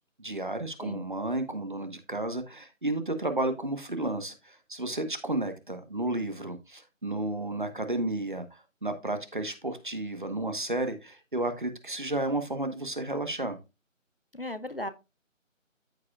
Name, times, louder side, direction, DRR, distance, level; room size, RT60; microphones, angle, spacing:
voice 1, 0.2-13.6, right 2 dB, 40° right, 8 dB, 1.1 m, -32 dB
voice 2, 14.3-14.9, left 1 dB, 45° left, 12 dB, 0.6 m, -36 dB
13.5 x 4.7 x 2.3 m, 0.27 s
figure-of-eight pair, 170°, 39 cm